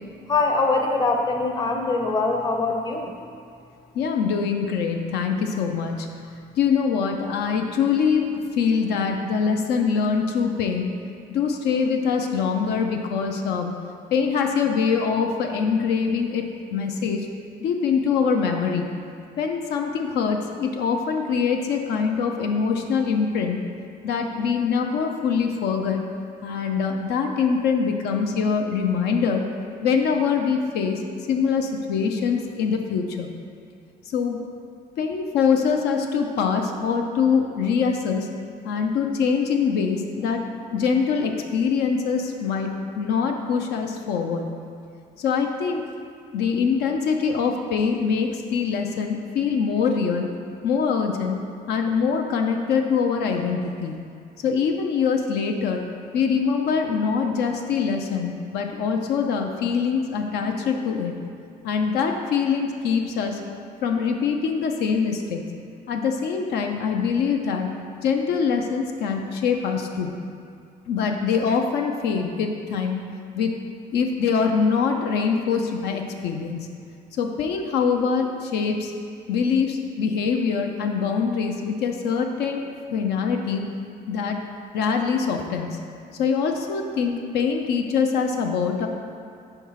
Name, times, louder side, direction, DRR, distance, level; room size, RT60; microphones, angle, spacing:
voice 1, 0.3-3.1, left 3 dB, 25° left, 2 dB, 0.7 m, -23 dB
voice 2, 3.9-6.1 6.6-11.0 11.3-13.7 14.1-17.3 17.6-18.8 19.4-23.7 24.0-26.0 26.4-29.5 29.8-31.0 31.3-33.3 34.0-34.4 35.0-38.3 38.6-44.5 45.2-45.8 46.3-50.3 50.6-51.4 51.7-53.9 54.4-55.9 56.1-61.1 61.6-63.4 63.8-65.4 65.9-70.1 70.9-73.0 73.4-73.6 73.9-76.7 77.2-78.9 79.3-83.6 84.1-84.4 84.7-85.8 86.2-88.9, left 6 dB, 75° left, 3 dB, 0.6 m, -24 dB
4.6 x 4.5 x 5.7 m, 2.4 s
cardioid pair, 110°, 17 cm